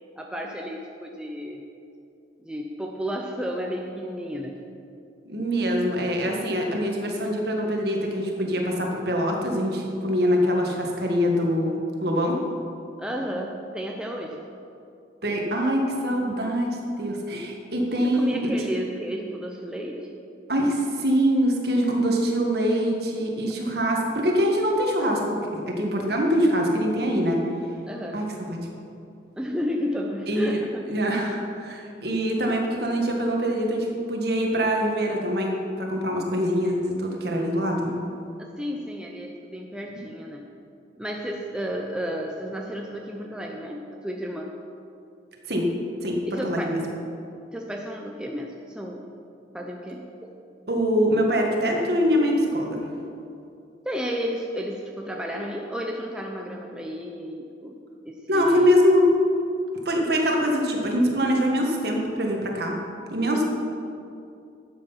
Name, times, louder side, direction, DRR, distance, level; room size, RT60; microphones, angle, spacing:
voice 1, 0.2-1.7 2.4-4.6 13.0-14.4 17.8-20.2 27.9-28.2 29.4-30.9 38.4-40.5 41.0-44.5 46.3-46.8 47.5-49.2 49.5-50.3 53.8-58.8 63.3-63.4, equal, 5° right, 0 dB, 0.6 m, -32 dB
voice 2, 5.2-11.7 12.0-12.4 15.2-18.5 20.5-27.4 28.1-28.7 30.3-30.6 30.9-38.0 45.5-45.7 46.0-46.8 50.7-52.8 58.3-59.1 59.8-62.8 63.1-63.4, equal, 55° right, 0 dB, 1.7 m, -24 dB
12.0 x 7.8 x 5.7 m, 2.6 s
head